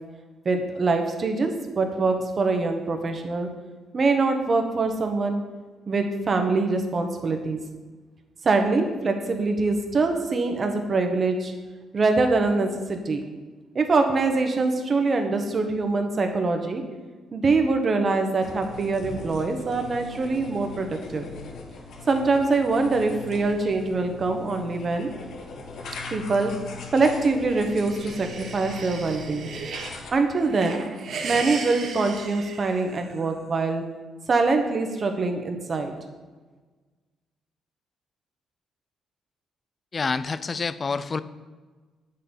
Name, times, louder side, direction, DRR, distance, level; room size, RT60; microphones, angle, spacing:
voice 1, 0.4-3.5 3.9-5.4 5.9-7.6 8.4-11.5 11.9-13.2 13.7-16.8 17.3-21.3 22.1-25.1 26.1-26.5 26.9-29.5 30.1-30.8 31.2-33.8 34.3-35.9, right 3 dB, 40° right, 5 dB, 1.4 m, -24 dB
sound 1, 18.4-30.1, left 4 dB, 70° left, 1.3 m, -40 dB
sound 2, 27.3-30.0 30.4-33.3, right 5 dB, 65° right, 1.2 m, -36 dB
voice 2, 39.9-41.2, left 4 dB, 35° left, 15 dB, 0.5 m, -27 dB
8.3 x 6.8 x 5.6 m, 1.3 s
cardioid pair, 90°, 0 cm